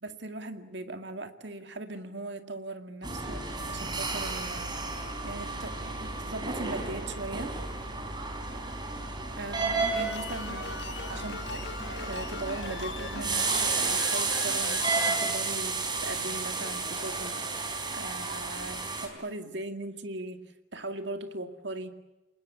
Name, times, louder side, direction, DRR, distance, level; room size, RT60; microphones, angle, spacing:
voice 1, 0.0-4.8 5.2-7.6 9.4-20.4 20.7-21.9, right 2 dB, 65° right, 7 dB, 2.2 m, -39 dB
sound 1, 3.0-19.1, right 3 dB, 25° right, 4.3 m, -32 dB
sound 2, 9.8-15.1, left 4 dB, 60° left, 1.7 m, -40 dB
28.5 x 20.0 x 8.8 m, 1.0 s
head